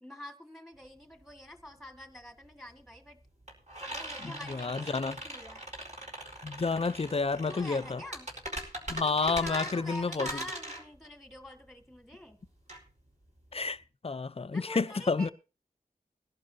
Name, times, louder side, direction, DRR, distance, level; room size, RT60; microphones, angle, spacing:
voice 1, 0.0-3.2 3.9-5.6 7.5-8.3 9.2-12.4 14.5-15.3, left 1 dB, ahead, 1.9 m, -46 dB
sound 1, 0.8-0.9 1.1-13.8, right 1 dB, 45° right, 4.3 m, -41 dB
voice 2, 4.2-5.2 6.4-8.0 8.9-10.3 13.5-15.3, left 4 dB, 35° left, 0.6 m, -30 dB
21.0 x 11.5 x 2.8 m
wide cardioid pair, 60°, 16 cm